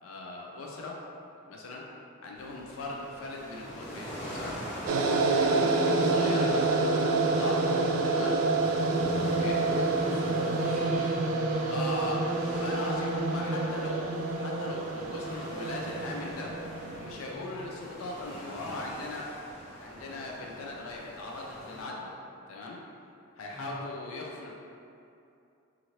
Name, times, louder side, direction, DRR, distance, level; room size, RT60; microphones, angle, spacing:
voice 1, 0.0-1.0 1.5-1.8 2.2-4.6 5.2-6.9 7.2-7.7 8.0-8.4 9.4-9.6 11.7-16.6 17.0-19.3 19.8-22.1 22.5-22.8 23.4-24.5, left 2 dB, 80° left, -2 dB, 0.4 m, -39 dB
sound 1, 2.4-21.8, equal, 50° left, 0.8 m, -44 dB
sound 2, 4.9-17.1, right 3 dB, 85° right, 0.3 m, -28 dB
sound 3, 9.2-16.9, right 1 dB, 45° right, 0.8 m, -46 dB
voice 2, 9.6-12.2 17.3-17.5 23.5-23.8, left 1 dB, 10° right, -14 dB, 0.5 m, -41 dB
2.8 x 2.4 x 3.0 m, 2.6 s
head